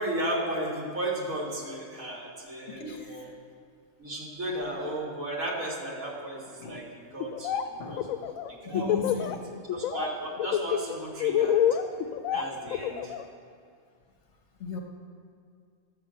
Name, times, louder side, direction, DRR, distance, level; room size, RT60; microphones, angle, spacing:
voice 1, 0.0-3.2 4.0-7.6 7.9-8.1 8.5-9.3 9.7-11.7 12.3-13.1, right 1 dB, 80° right, -3 dB, 2.4 m, -34 dB
voice 2, 2.7-3.3 6.6-6.8 7.7-8.0 8.6-9.5 14.6-14.8, left 4 dB, 60° left, 2 dB, 1.3 m, -37 dB
Laughter, 7.2-7.6 7.9-9.3 9.7-10.1 10.4-13.2, left 10 dB, 80° left, 1.0 m, -27 dB
12.0 x 5.2 x 7.5 m, 2.2 s
omnidirectional pair, 1.4 m